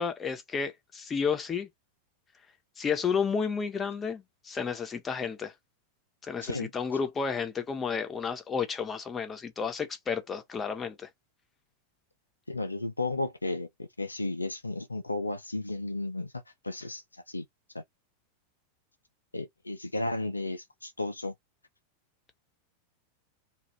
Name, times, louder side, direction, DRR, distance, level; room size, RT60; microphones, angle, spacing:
voice 1, 0.0-1.7 2.8-5.5 6.2-11.1, left 6 dB, 20° left, 0.8 m, -31 dB
voice 2, 12.5-17.0 17.3-17.5 17.7-17.8 19.3-21.3, left 2 dB, 80° left, 0.4 m, -34 dB
2.5 x 2.4 x 3.2 m
figure-of-eight pair, 90°, 0 cm